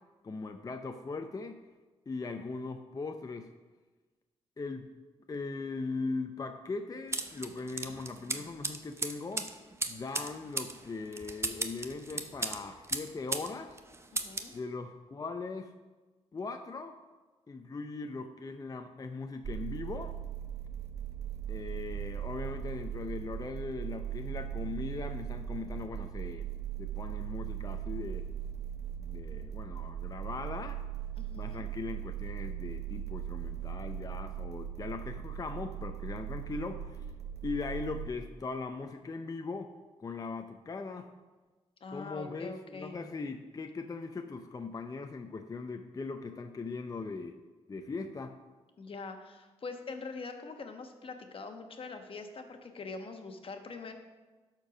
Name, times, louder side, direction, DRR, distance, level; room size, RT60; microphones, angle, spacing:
voice 1, 0.2-1.6 2.1-3.5 4.6-4.9 5.3-9.5 9.9-13.8 14.5-15.7 16.3-17.0 17.5-20.2 21.5-26.5 26.8-28.3 29.0-30.8 31.3-37.0 37.4-39.7 40.0-41.1 41.9-47.4 47.7-48.4, left 4 dB, 30° left, 6 dB, 0.5 m, -39 dB
sound 1, 7.1-13.5 13.8-14.5, right 2 dB, 20° right, 0.7 m, -36 dB
voice 2, 14.1-14.6 31.2-31.7 41.8-42.9 48.8-53.9, left 4 dB, 50° left, 5 dB, 1.2 m, -43 dB
sound 2, 19.4-38.1, right 10 dB, 65° right, 0.6 m, -39 dB
12.0 x 4.5 x 6.1 m, 1.3 s
cardioid pair, 85°, 12 cm